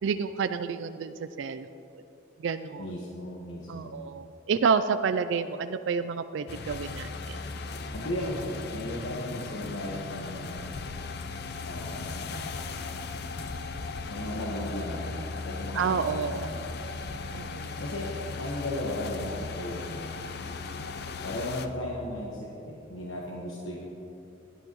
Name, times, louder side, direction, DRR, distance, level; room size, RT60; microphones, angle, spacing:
voice 1, 0.0-1.7 1.9-2.0 2.4-2.9 3.7-7.4 15.7-16.5 17.3-17.7, right 5 dB, 70° right, 11 dB, 0.3 m, -29 dB
voice 2, 2.8-4.0 7.9-10.7 11.6-12.5 14.1-16.8 17.8-18.1 18.4-20.1 21.2-23.8, left 1 dB, 90° left, -3 dB, 1.3 m, -36 dB
sound 1, 6.5-21.7, left 4 dB, 55° left, 0.5 m, -37 dB
17.0 x 11.0 x 3.0 m, 2.8 s
head